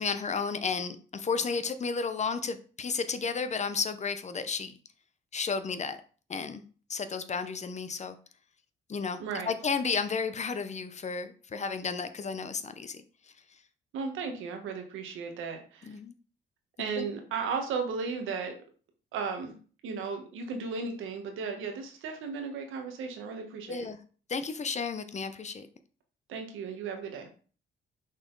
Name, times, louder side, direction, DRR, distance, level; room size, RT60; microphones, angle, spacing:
voice 1, 0.0-4.7 5.3-6.0 6.3-6.6 6.9-8.1 8.9-13.0 15.8-16.1 17.0-17.1 23.7-24.0 24.3-25.7, left 5 dB, 35° left, 10 dB, 0.8 m, -32 dB
voice 2, 13.9-16.0 16.8-18.5 19.1-19.5 19.8-23.9 26.3-27.3, right 5 dB, 85° right, 4 dB, 1.4 m, -35 dB
6.0 x 4.2 x 4.0 m, 0.40 s
cardioid pair, 90°, 20 cm